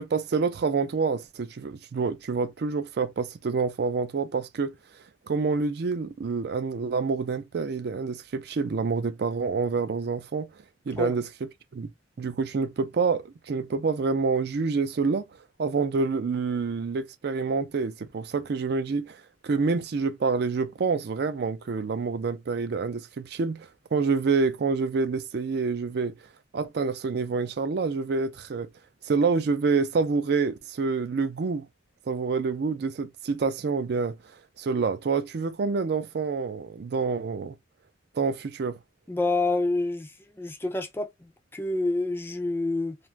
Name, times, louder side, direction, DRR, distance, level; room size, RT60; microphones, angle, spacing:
voice 1, 0.0-4.8 5.3-10.5 10.9-11.9 12.2-15.3 15.6-26.1 26.5-28.7 29.0-31.7 32.1-34.2 34.6-37.6 38.1-38.8, right 4 dB, 60° right, 0.4 m, -27 dB
voice 2, 39.1-43.0, left 2 dB, 10° left, 0.3 m, -28 dB
2.4 x 2.3 x 3.1 m
head